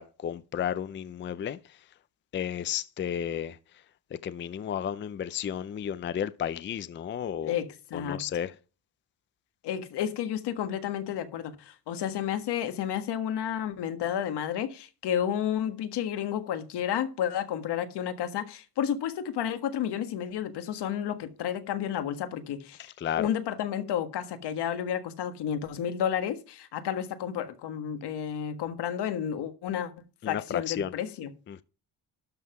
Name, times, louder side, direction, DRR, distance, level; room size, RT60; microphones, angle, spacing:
voice 1, 0.0-1.6 2.3-3.6 4.2-7.6 7.9-8.5 23.0-23.3 30.2-30.9 31.5-31.6, left 9 dB, 30° left, 0.4 m, -32 dB
voice 2, 7.4-8.2 9.6-29.9 30.3-31.3, left 9 dB, 80° left, 1.6 m, -31 dB
12.5 x 5.6 x 5.8 m
cardioid pair, 155°, 40 cm